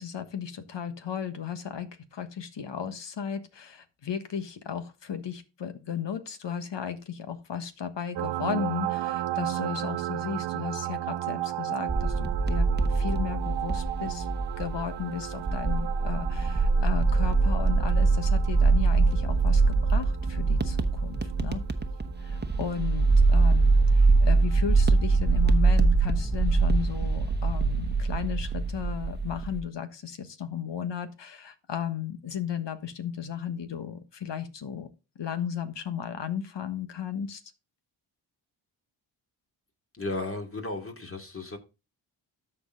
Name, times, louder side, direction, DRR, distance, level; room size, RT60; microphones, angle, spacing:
voice 1, 0.0-14.3 14.6-21.6 22.2-34.9 35.1-37.4, left 8 dB, 60° left, 1.4 m, -35 dB
sound 1, 8.1-25.4 26.9-27.0, right 14 dB, 65° right, 0.6 m, -36 dB
sound 2, 11.9-29.6, right 3 dB, 20° right, 1.1 m, -23 dB
voice 2, 39.9-41.6, left 2 dB, 25° left, 2.7 m, -34 dB
13.0 x 4.6 x 3.8 m
supercardioid pair, 45°, 48 cm